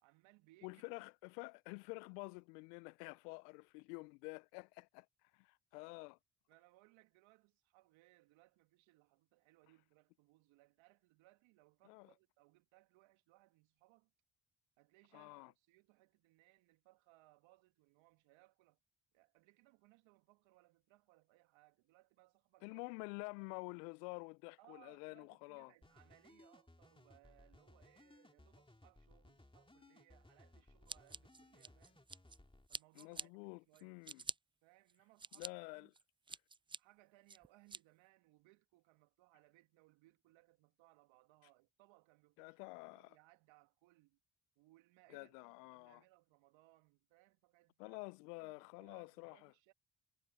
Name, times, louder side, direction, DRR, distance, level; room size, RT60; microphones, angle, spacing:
voice 1, 0.0-0.9 5.8-5.9 6.5-14.1 14.8-18.8 19.1-22.8 24.6-32.1 32.7-33.3 33.7-34.0 34.6-35.9 36.8-44.2 44.6-48.0 48.4-49.7, right 20 dB, 75° right, 2.2 m, -69 dB
voice 2, 0.6-5.1 5.3-6.2 11.8-12.1 15.1-15.5 22.6-25.7 33.0-34.2 35.3-35.9 42.4-43.2 45.1-46.0 47.8-49.5, left 30 dB, 80° left, 0.7 m, -49 dB
sound 1, 25.8-32.7, left 2 dB, 10° left, 2.6 m, -64 dB
Scissors, 30.9-32.4 32.7-33.3 33.7-34.4 34.9-35.5 35.9-36.8 37.3-37.8, right 4 dB, 10° right, 0.4 m, -46 dB
hypercardioid pair, 40°, 47 cm